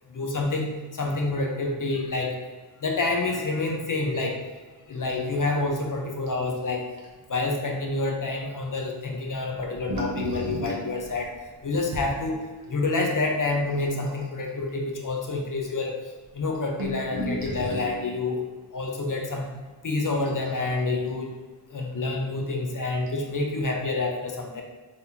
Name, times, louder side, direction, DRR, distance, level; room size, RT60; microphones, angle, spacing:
voice 1, 0.1-2.4 2.8-4.4 4.9-6.9 7.3-11.3 11.6-16.0 16.3-18.4 18.7-19.5 19.8-21.3 21.7-24.6, left 3 dB, 40° left, 1 dB, 0.9 m, -28 dB
sound 1, 5.0-5.6 5.9-6.0 6.3-6.5 7.0-7.1 9.5-12.1 13.8-14.5 15.3-15.4 15.6-15.7 16.3-18.0 20.2-21.1 22.4-22.5 23.1-23.2, equal, 50° right, 1.1 m, -34 dB
4.1 x 3.6 x 2.8 m, 1.3 s
cardioid pair, 50°, 48 cm